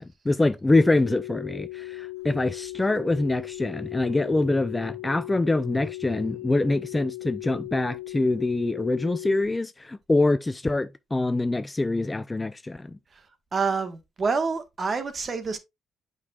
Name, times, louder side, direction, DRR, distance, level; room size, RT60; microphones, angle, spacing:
voice 1, 0.0-13.0, left 2 dB, 15° left, 0.4 m, -25 dB
sound 1, 0.7-9.4, left 20 dB, 60° left, 1.9 m, -38 dB
voice 2, 13.5-15.6, right 4 dB, 40° right, 1.4 m, -27 dB
8.1 x 5.3 x 2.4 m
cardioid pair, 90°, 0 cm